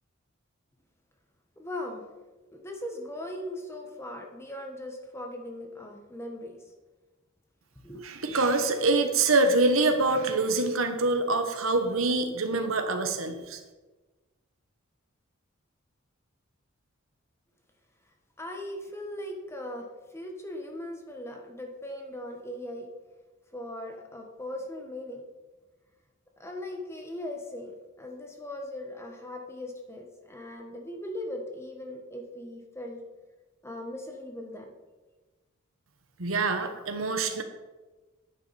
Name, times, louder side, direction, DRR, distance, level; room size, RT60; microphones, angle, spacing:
voice 1, 1.6-2.0 2.5-6.6 7.8-8.1 18.4-22.9 23.5-25.2 26.4-33.0 33.6-34.8 36.6-36.8, left 1 dB, 15° left, 2 dB, 1.5 m, -39 dB
voice 2, 8.0-13.6 36.2-37.4, right 3 dB, 80° right, 6 dB, 1.3 m, -25 dB
10.5 x 9.3 x 4.4 m, 1.2 s
head